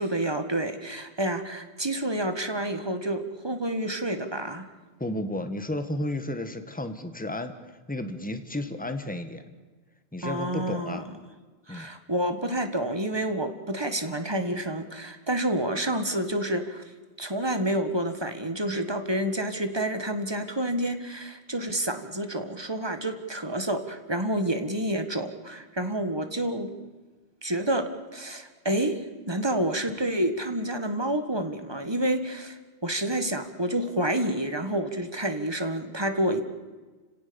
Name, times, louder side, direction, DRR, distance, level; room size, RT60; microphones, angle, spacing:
voice 1, 0.0-4.7 10.2-11.0 11.7-16.8 17.2-26.7 27.4-36.4, right 1 dB, 20° right, 8 dB, 1.7 m, -29 dB
voice 2, 5.0-7.5 7.9-9.4 10.1-11.0 11.7-11.9, left 1 dB, 5° left, 8 dB, 1.5 m, -32 dB
30.0 x 17.0 x 7.1 m, 1.3 s
omnidirectional pair, 1.2 m